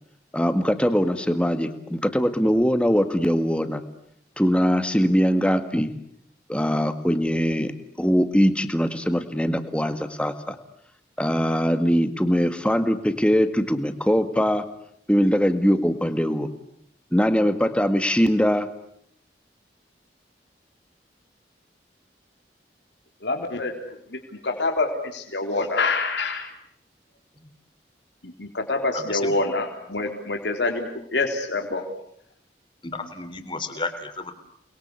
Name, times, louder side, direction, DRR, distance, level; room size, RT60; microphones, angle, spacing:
voice 1, 0.3-3.8 4.4-5.9 6.5-7.7 8.0-10.6 11.2-14.6 15.1-16.5 17.1-18.7, equal, 5° left, 9 dB, 1.9 m, -22 dB
voice 2, 23.2-26.5 28.2-31.8, left 3 dB, 90° left, 3 dB, 3.7 m, -26 dB
voice 3, 28.9-29.3 32.8-34.3, left 3 dB, 30° left, 8 dB, 3.5 m, -33 dB
30.0 x 22.0 x 8.4 m, 0.70 s
head